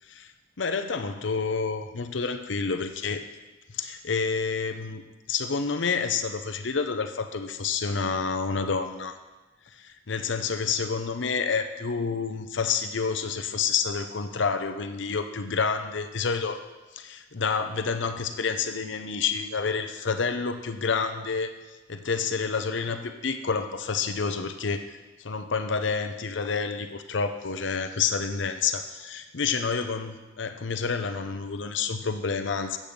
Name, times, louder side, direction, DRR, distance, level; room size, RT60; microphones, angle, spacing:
voice 1, 0.6-3.2 3.7-5.0 5.3-9.1 9.7-16.6 16.9-21.5 21.9-32.8, left 5 dB, 65° left, 8 dB, 0.7 m, -29 dB
8.4 x 7.4 x 5.2 m, 1.1 s
head